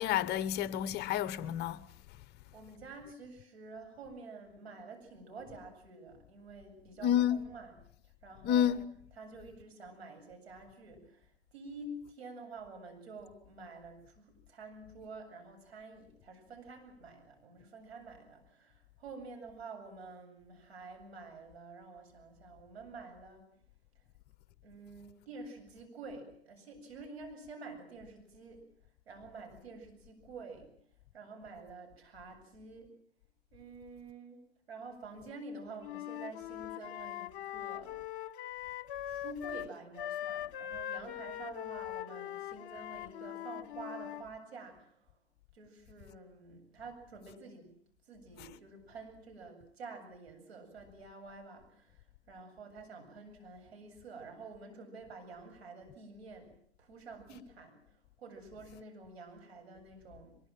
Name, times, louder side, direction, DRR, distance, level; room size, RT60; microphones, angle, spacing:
voice 1, 0.0-1.8 7.0-7.4 8.4-8.9 48.4-48.5, left 10 dB, 30° left, 0.9 m, -29 dB
voice 2, 2.5-7.8 8.2-8.8 9.1-23.5 24.6-28.7 29.1-30.7 31.1-32.9 33.5-34.4 34.7-38.0 39.0-45.1 45.5-47.7 48.1-56.5 56.8-60.4, right 3 dB, 75° right, 7.9 m, -49 dB
Wind instrument woodwind instrument, 35.8-39.7 40.0-44.3, left 12 dB, 55° left, 1.0 m, -41 dB
23.0 x 22.0 x 7.6 m
hypercardioid pair, 110°, 32 cm